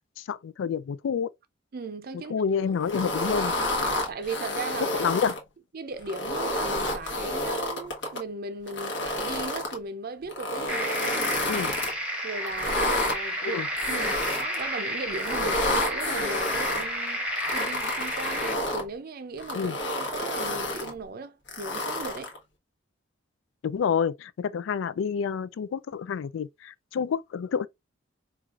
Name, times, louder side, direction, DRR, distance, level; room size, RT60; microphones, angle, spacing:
voice 1, 0.2-1.3 2.3-3.5 4.9-5.4 11.5-11.7 13.4-13.7 19.5-19.8 23.6-27.7, left 6 dB, 85° left, 0.3 m, -28 dB
voice 2, 1.7-2.3 3.8-5.1 5.7-11.6 12.2-19.7 20.1-22.4, right 3 dB, 50° right, 0.5 m, -37 dB
sound 1, 2.8-5.4 6.0-8.2 8.7-9.8 10.3-11.9 12.5-13.2 13.8-14.6 15.1-16.8 17.4-18.9 19.4-20.9 21.5-22.4, left 1 dB, 65° left, 1.1 m, -29 dB
sound 2, 10.7-18.6, equal, 5° right, 0.9 m, -31 dB
4.6 x 2.4 x 2.4 m
head